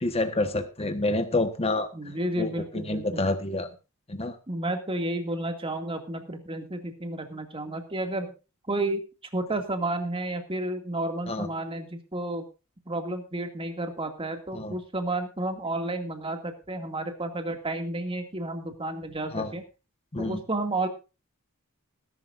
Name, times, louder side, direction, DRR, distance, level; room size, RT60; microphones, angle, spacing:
voice 1, 0.0-1.9 2.4-3.7 4.1-4.3 11.3-11.5 14.5-14.7 19.3-19.5 20.1-20.4, left 2 dB, 30° left, 7 dB, 1.3 m, -28 dB
voice 2, 1.9-3.2 4.5-8.3 8.7-9.0 9.3-12.5 12.9-19.6 20.2-20.9, right 2 dB, 25° right, 5 dB, 2.3 m, -31 dB
20.0 x 11.5 x 2.6 m, 0.30 s
head